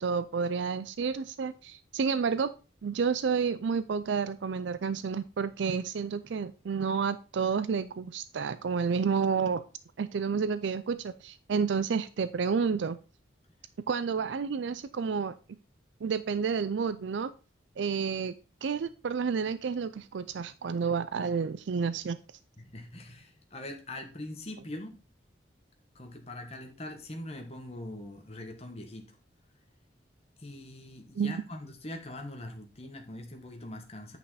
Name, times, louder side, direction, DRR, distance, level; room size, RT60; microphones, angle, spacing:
voice 1, 0.0-2.5 2.8-9.6 10.0-13.0 13.9-15.3 16.0-17.3 17.8-22.2 31.2-31.4, right 5 dB, 75° right, 14 dB, 0.4 m, -30 dB
voice 2, 22.6-25.0 25.9-29.0 30.4-34.2, left 1 dB, 35° left, 4 dB, 1.5 m, -42 dB
8.9 x 5.4 x 4.1 m, 0.33 s
head